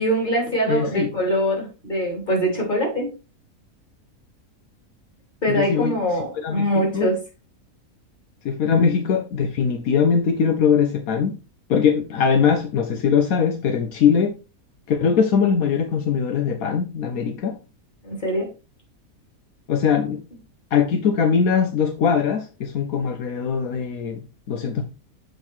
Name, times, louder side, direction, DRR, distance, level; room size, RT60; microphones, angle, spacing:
voice 1, 0.0-3.1 5.4-7.2 8.7-8.8 18.0-18.5, equal, 35° left, 3.0 m, -23 dB
voice 2, 0.7-1.1 5.5-5.9 6.4-7.1 8.4-11.4 11.7-14.3 14.9-17.6 19.7-20.2 20.7-24.8, left 6 dB, 80° left, 1.3 m, -21 dB
7.9 x 4.0 x 4.4 m
omnidirectional pair, 1.5 m